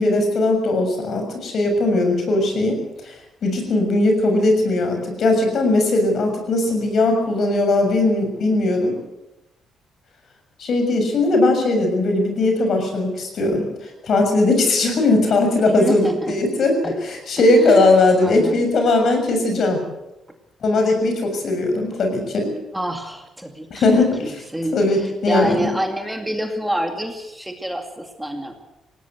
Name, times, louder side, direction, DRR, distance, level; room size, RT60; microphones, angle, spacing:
voice 1, 0.0-3.1 3.4-9.0 10.6-13.7 14.0-19.8 20.6-22.5 23.7-24.3 24.7-25.7, left 2 dB, 60° left, 5 dB, 6.7 m, -19 dB
voice 2, 15.7-16.4 16.8-16.9 17.5-17.9 18.2-18.6 22.7-28.5, right 1 dB, 5° right, 4 dB, 2.4 m, -27 dB
19.0 x 17.5 x 8.0 m, 0.96 s
cardioid pair, 90°, 0 cm